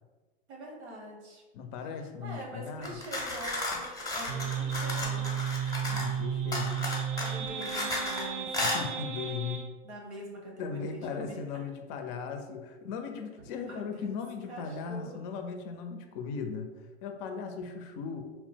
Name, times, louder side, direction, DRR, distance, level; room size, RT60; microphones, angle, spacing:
voice 1, 0.5-1.4 2.2-5.4 7.2-8.8 9.8-11.4 13.4-14.1 14.5-15.2, equal, 85° right, -1 dB, 1.0 m, -44 dB
voice 2, 1.5-3.0 5.9-6.8 8.6-9.6 10.6-16.7 17.0-18.2, left 5 dB, 55° left, 6 dB, 0.4 m, -37 dB
sound 1, 2.8-6.2 6.5-8.2 8.5-8.8, left 2 dB, 10° left, 0.7 m, -34 dB
sound 2, 4.3-9.7, right 8 dB, 55° right, 0.4 m, -33 dB
2.8 x 2.0 x 3.3 m, 1.2 s
hypercardioid pair, 100°, 33 cm